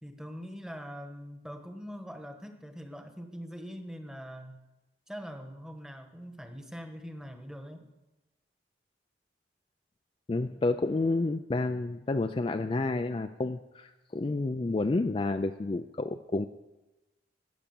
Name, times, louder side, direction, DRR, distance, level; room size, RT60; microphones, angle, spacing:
voice 1, 0.0-4.6 5.1-7.9, equal, 5° right, 5 dB, 1.2 m, -43 dB
voice 2, 10.3-16.5, left 2 dB, 30° left, 8 dB, 0.4 m, -30 dB
14.5 x 8.5 x 7.0 m, 1.0 s
head